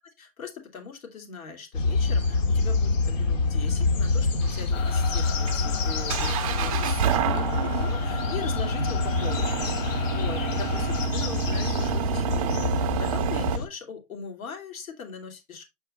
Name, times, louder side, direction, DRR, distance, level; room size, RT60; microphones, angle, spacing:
voice 1, 0.2-15.6, left 6 dB, 80° left, 2.6 m, -40 dB
sound 1, 1.7-13.7, left 3 dB, 65° left, 1.5 m, -26 dB
sound 2, 4.4-13.6, right 11 dB, 30° right, 0.5 m, -30 dB
sound 3, 4.7-11.1, left 7 dB, 35° left, 0.7 m, -37 dB
7.6 x 4.5 x 3.1 m
hypercardioid pair, 140°, 41 cm